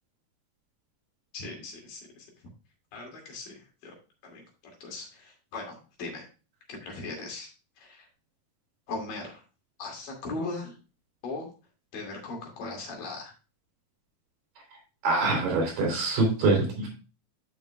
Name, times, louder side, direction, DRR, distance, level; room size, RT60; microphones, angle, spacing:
voice 1, 1.3-2.3 2.9-4.0 4.2-6.3 6.7-7.5 7.8-8.1 8.9-9.4 9.8-10.8 11.2-11.5 11.9-13.3, left 3 dB, 70° left, 0 dB, 4.1 m, -39 dB
voice 2, 14.7-16.9, right 3 dB, 70° right, 0 dB, 4.4 m, -25 dB
12.0 x 5.7 x 2.3 m, 0.32 s
omnidirectional pair, 4.0 m